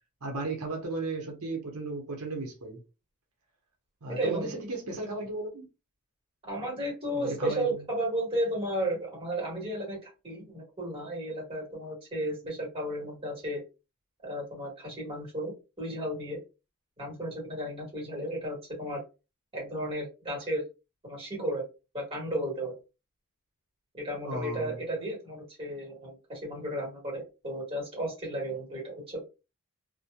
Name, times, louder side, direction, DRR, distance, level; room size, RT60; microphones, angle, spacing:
voice 1, 0.2-2.8 4.0-5.7 7.1-7.8 24.2-24.8, right 2 dB, 80° right, 0.8 m, -35 dB
voice 2, 4.1-4.5 6.4-13.6 14.2-16.4 17.0-19.0 19.5-20.6 21.0-21.6 21.9-22.8 23.9-29.2, right 1 dB, 25° right, 1.4 m, -34 dB
2.8 x 2.1 x 2.2 m
head